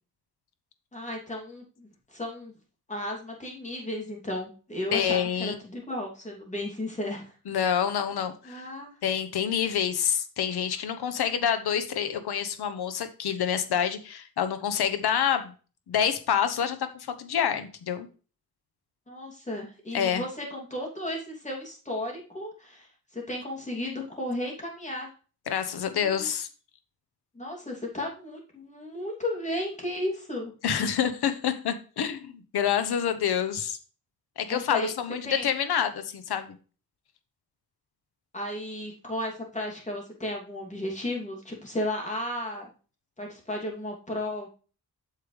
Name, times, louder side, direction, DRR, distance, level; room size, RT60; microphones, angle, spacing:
voice 1, 0.9-2.5 2.9-7.3 8.4-8.9 19.1-25.1 25.9-26.3 27.3-30.5 34.5-34.9 35.2-35.5 38.3-42.7 43.2-44.5, left 1 dB, 20° left, -1 dB, 2.8 m, -34 dB
voice 2, 4.9-5.5 7.5-8.7 9.0-15.5 15.9-18.1 19.9-20.2 25.5-26.5 30.6-33.8 34.4-36.5, left 8 dB, 90° left, 9 dB, 1.0 m, -27 dB
8.5 x 6.8 x 3.3 m, 0.36 s
wide cardioid pair, 115°, 38 cm